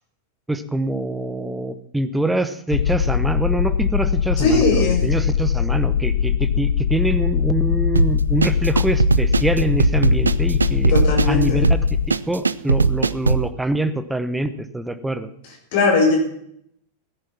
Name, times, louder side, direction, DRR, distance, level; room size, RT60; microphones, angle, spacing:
voice 1, 0.5-10.9 11.3-11.7 12.1-15.3, right 1 dB, 5° right, 11 dB, 1.1 m, -24 dB
sound 1, 2.7-12.1, left 8 dB, 65° left, 0.5 m, -21 dB
voice 2, 4.4-5.0 10.9-11.6 15.7-16.2, left 3 dB, 50° left, 1 dB, 5.8 m, -19 dB
sound 2, 8.0-13.5, right 5 dB, 75° right, 0.4 m, -19 dB
17.0 x 10.5 x 6.0 m, 0.71 s
figure-of-eight pair, 90°, 0 cm